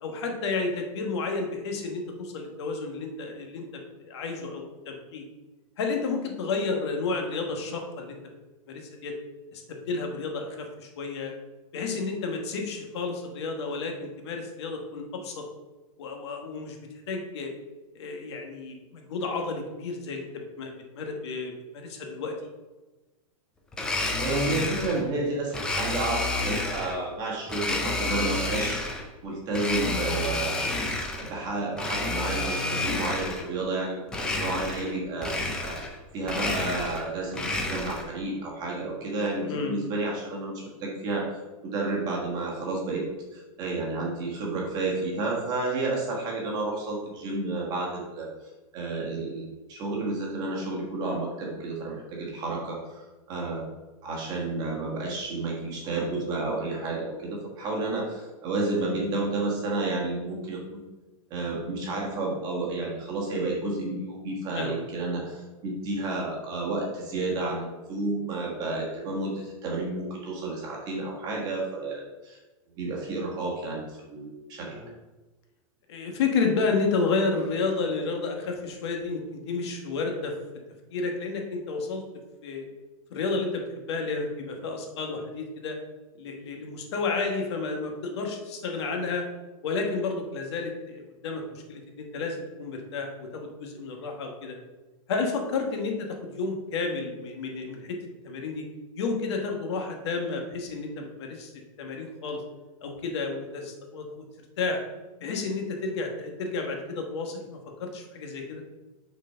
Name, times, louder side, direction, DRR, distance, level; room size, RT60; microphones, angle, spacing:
voice 1, 0.0-5.2 5.8-8.2 8.7-9.1 9.5-11.3 11.7-15.4 16.0-16.8 17.1-17.5 17.9-20.3 20.6-22.3 39.4-39.7 64.5-64.8 74.6-74.9 75.9-80.3 80.9-82.0 82.4-82.7 83.1-85.8 86.1-89.3 89.6-94.6 95.1-98.0 98.2-98.6 98.9-101.5 101.8-102.4 102.8-104.2 104.6-104.8 105.2-108.6, left 4 dB, 50° left, 2 dB, 1.2 m, -31 dB
Domestic sounds home sounds, 23.7-25.0 25.5-27.0 27.5-29.1 29.5-31.3 31.7-33.5 34.1-34.9 35.2-36.0 36.2-38.1, left 2 dB, 5° left, 0.3 m, -30 dB
voice 2, 24.2-28.9 29.2-30.7 31.3-41.3 41.6-43.0 43.3-48.3 48.7-53.7 54.0-60.8 61.3-72.4 72.8-74.8, right 2 dB, 20° right, -2 dB, 1.4 m, -31 dB
6.0 x 4.3 x 5.4 m, 1.1 s
supercardioid pair, 170°, 19 cm